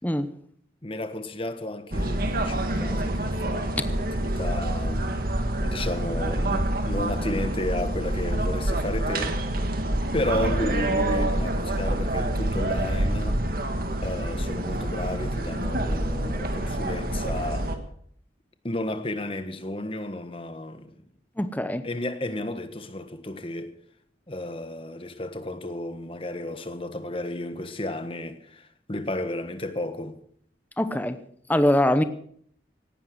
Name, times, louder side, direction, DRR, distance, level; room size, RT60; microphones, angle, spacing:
voice 1, 0.8-5.2 5.6-9.4 10.1-13.4 14.0-17.7 18.6-21.0 21.8-23.7 24.3-30.2, left 1 dB, 30° left, 1.4 m, -33 dB
sound 1, 1.9-17.8, right 1 dB, 50° right, 1.8 m, -27 dB
voice 2, 21.4-21.8 30.8-31.2 31.5-32.0, left 1 dB, 10° left, 0.8 m, -22 dB
18.0 x 11.5 x 6.3 m
head